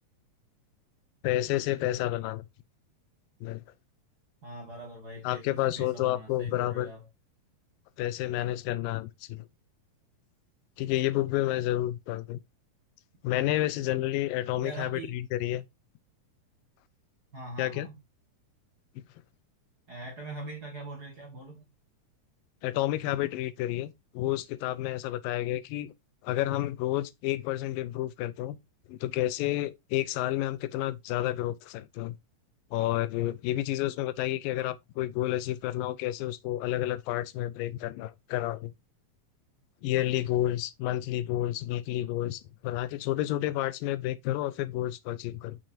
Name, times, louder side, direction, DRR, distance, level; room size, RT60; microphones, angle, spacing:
voice 1, 1.2-2.5 3.4-3.6 5.2-6.9 8.0-9.5 10.8-12.4 13.2-15.7 17.6-17.9 22.6-25.9 26.2-28.6 28.9-32.2 32.7-38.7 39.8-45.6, left 14 dB, 85° left, 2.3 m, -30 dB
voice 2, 4.4-7.0 14.6-15.2 17.3-18.0 19.9-21.7, right 2 dB, 40° right, 1.6 m, -42 dB
6.8 x 6.1 x 2.7 m
omnidirectional pair, 4.0 m